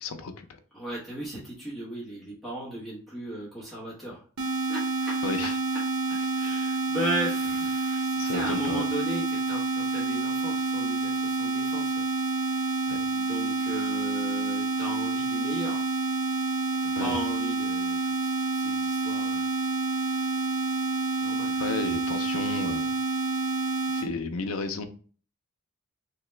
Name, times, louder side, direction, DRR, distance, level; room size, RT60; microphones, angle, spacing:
voice 1, 0.0-0.6 5.2-5.5 8.2-8.8 12.9-13.0 17.0-17.2 21.6-22.9 23.9-24.8, left 4 dB, 65° left, 8 dB, 0.5 m, -33 dB
voice 2, 0.7-5.8 6.3-12.0 12.4-12.6 13.1-15.8 16.8-19.5 20.0-20.4 21.2-21.6, right 1 dB, ahead, -8 dB, 1.0 m, -37 dB
sound 1, 4.4-24.1, right 3 dB, 75° right, 0.7 m, -28 dB
3.2 x 2.9 x 3.2 m, 0.41 s
head